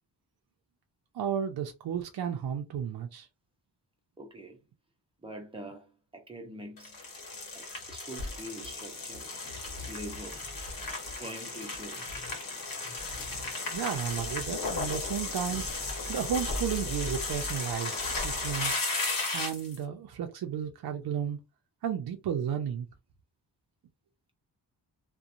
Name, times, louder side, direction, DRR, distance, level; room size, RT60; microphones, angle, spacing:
voice 1, 1.1-3.3 13.7-18.7 19.3-21.4 21.8-22.9, right 8 dB, 65° right, 0.5 m, -33 dB
voice 2, 4.2-4.6 5.2-7.0 7.5-9.3 9.7-10.5 11.1-12.1, right 1 dB, 15° right, 0.6 m, -44 dB
sound 1, 6.8-19.8, left 3 dB, 55° left, 1.1 m, -35 dB
2.8 x 2.2 x 2.4 m
wide cardioid pair, 165°, 42 cm